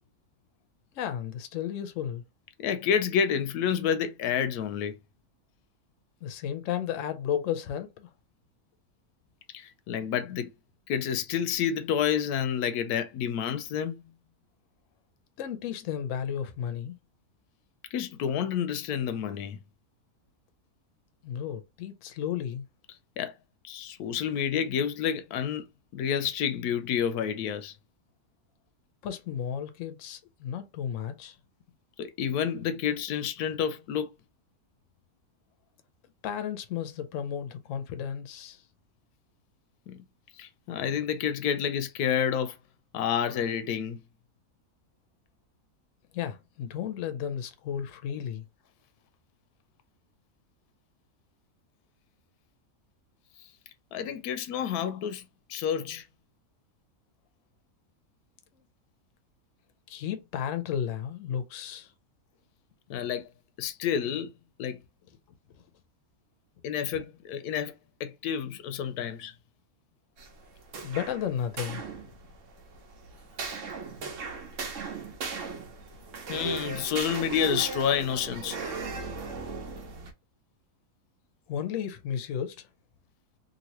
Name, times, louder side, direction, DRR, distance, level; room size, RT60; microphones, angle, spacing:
voice 1, 0.9-2.2 6.2-8.1 15.4-17.0 21.2-22.6 29.0-31.4 36.2-38.6 46.1-48.4 59.9-61.9 70.8-71.8 81.5-82.7, left 9 dB, 70° left, 0.9 m, -33 dB
voice 2, 2.6-4.9 9.5-10.5 10.9-14.0 17.9-19.6 23.2-23.3 23.6-25.7 25.9-27.7 32.0-34.1 39.9-40.0 40.4-42.6 42.9-44.0 53.9-55.2 55.5-56.0 62.9-63.3 63.6-64.3 64.6-64.8 66.6-67.7 68.0-69.3 76.3-78.6, left 8 dB, 90° left, 1.1 m, -29 dB
sound 1, 70.2-80.1, right 4 dB, 60° right, 1.0 m, -37 dB
2.9 x 2.8 x 2.9 m
omnidirectional pair, 1.6 m